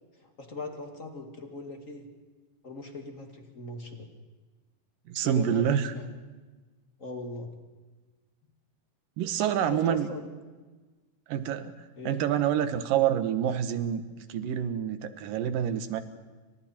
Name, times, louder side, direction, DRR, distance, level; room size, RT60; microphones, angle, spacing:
voice 1, 0.2-2.1 2.6-4.1 5.2-5.6 5.9-6.1 7.0-7.5 9.7-10.3 12.0-12.2, left 2 dB, 25° left, 4 dB, 2.2 m, -39 dB
voice 2, 5.1-5.9 9.2-10.1 11.3-11.7 12.0-16.0, right 9 dB, 80° right, 11 dB, 2.9 m, -27 dB
29.5 x 26.0 x 4.4 m, 1.3 s
omnidirectional pair, 3.9 m